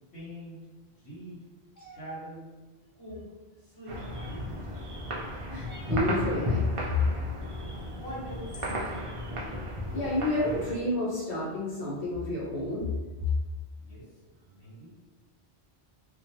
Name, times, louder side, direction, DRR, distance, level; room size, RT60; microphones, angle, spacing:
voice 1, 0.1-0.7 1.0-1.5 1.9-2.6 2.9-4.7 7.7-9.1 13.8-14.9, equal, 85° left, -10 dB, 1.6 m, -44 dB
sound 1, 1.7-2.1 4.1-4.6 5.6-6.1 7.8-7.9 8.5-8.9, equal, 25° left, 0.5 m, -49 dB
sound 2, 3.9-10.7, left 1 dB, 50° right, 0.3 m, -34 dB
voice 2, 5.5-6.6 9.9-12.9, left 1 dB, 65° left, -11 dB, 1.3 m, -30 dB
2.9 x 2.3 x 2.7 m, 1.2 s
omnidirectional pair, 1.1 m